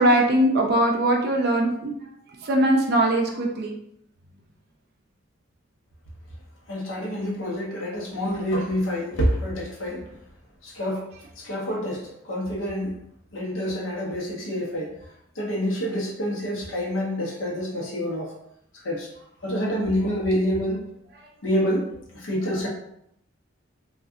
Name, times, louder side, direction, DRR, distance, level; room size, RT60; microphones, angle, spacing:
voice 1, 0.0-2.0 2.4-3.7, right 1 dB, 50° right, 1 dB, 0.4 m, -21 dB
voice 2, 6.7-10.1 10.6-11.1 11.4-13.0 13.3-14.9 15.4-18.3 18.8-19.1 19.4-20.8 21.4-22.7, equal, 85° left, -2 dB, 0.9 m, -27 dB
3.6 x 2.4 x 2.5 m, 0.73 s
head